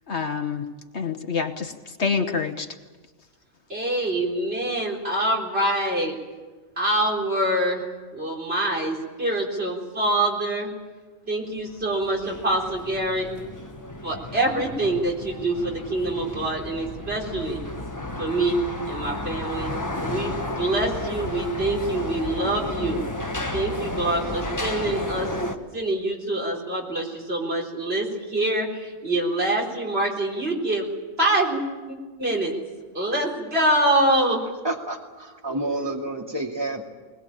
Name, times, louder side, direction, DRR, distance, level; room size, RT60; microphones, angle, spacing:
voice 1, 0.1-0.7 0.9-2.7, left 5 dB, 55° left, 6 dB, 1.4 m, -27 dB
voice 2, 3.7-6.1 6.8-7.8 8.1-10.7 11.2-13.4 14.0-17.6 18.2-18.6 18.9-19.7 20.0-23.0 23.5-25.3 25.7-30.9 31.2-31.6 31.9-32.5 32.9-34.4, right 1 dB, 50° right, -1 dB, 4.4 m, -25 dB
sound 1, 11.7-25.6, left 1 dB, 15° left, 1.3 m, -32 dB
voice 3, 34.6-36.9, right 2 dB, 20° right, 0 dB, 2.6 m, -29 dB
21.0 x 20.5 x 8.9 m, 1.3 s
omnidirectional pair, 1.4 m